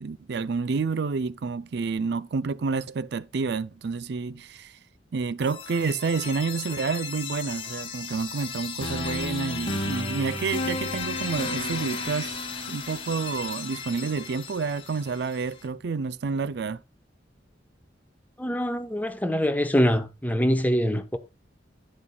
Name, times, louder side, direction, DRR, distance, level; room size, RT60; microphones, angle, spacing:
voice 1, 0.0-4.8 5.1-12.4 12.7-16.8, right 4 dB, 65° right, 0.4 m, -29 dB
sound 1, 5.4-15.3, left 3 dB, 30° left, 2.5 m, -33 dB
voice 2, 18.4-21.2, equal, 10° left, 1.0 m, -24 dB
11.0 x 10.0 x 2.3 m
head